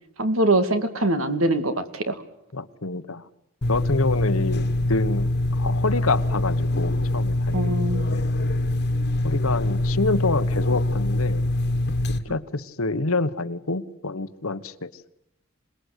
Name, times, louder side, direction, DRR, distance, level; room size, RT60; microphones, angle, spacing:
voice 1, 0.2-2.2 7.5-8.1 12.3-12.4, right 1 dB, 65° right, 9 dB, 2.3 m, -23 dB
voice 2, 2.5-3.2 3.7-8.4 9.2-11.4 12.2-14.9, left 3 dB, 70° left, 13 dB, 1.2 m, -27 dB
sound 1, 3.6-12.2, left 1 dB, 50° left, 1.7 m, -24 dB
27.0 x 20.0 x 8.3 m, 0.77 s
head